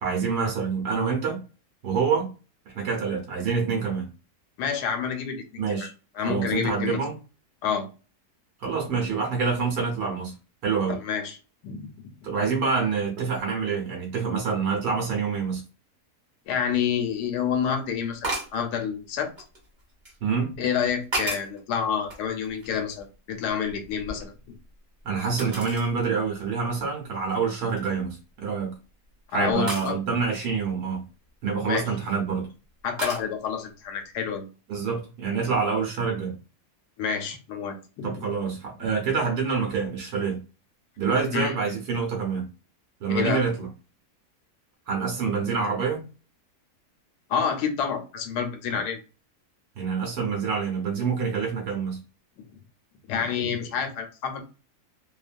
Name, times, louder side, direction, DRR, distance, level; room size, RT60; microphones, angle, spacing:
voice 1, 0.0-1.4 1.8-2.3 2.7-4.1 5.6-5.9 6.2-7.2 8.6-10.3 10.6-11.0 12.2-15.6 20.2-20.5 25.0-28.7 29.3-31.0 31.4-32.5 34.7-36.4 38.0-40.4 41.0-42.5 43.0-43.7 44.9-46.0 48.7-48.8 49.8-52.0, right 5 dB, 75° right, 1.2 m, -26 dB
voice 2, 4.6-5.9 6.2-7.0 7.6-7.9 10.9-11.4 11.6-11.9 12.2-12.3 16.5-19.3 20.6-24.3 29.3-30.0 31.6-31.9 32.8-34.5 37.0-38.3 41.3-41.5 43.1-43.4 47.3-49.0 53.1-54.5, left 7 dB, 90° left, 1.2 m, -28 dB
sound 1, 18.2-18.6 19.4-20.2 20.8-21.6 22.1-23.1 23.4-24.7 25.4-25.9 26.4-26.5 27.1-27.4 27.7-28.1 29.7-29.9 31.6-32.1 33.0-33.3, right 2 dB, 35° right, 1.1 m, -34 dB
3.0 x 2.1 x 2.4 m
omnidirectional pair, 1.7 m